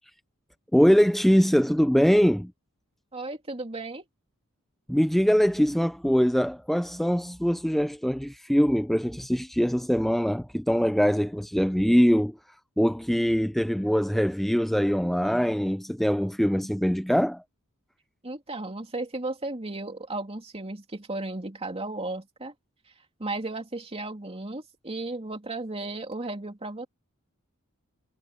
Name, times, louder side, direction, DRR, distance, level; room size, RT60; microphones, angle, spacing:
voice 1, 0.7-2.5 4.9-12.4 12.8-17.4, equal, ahead, 0.4 m, -23 dB
voice 2, 3.1-4.0 18.2-22.5 23.2-26.9, right 2 dB, 25° right, 2.8 m, -34 dB
head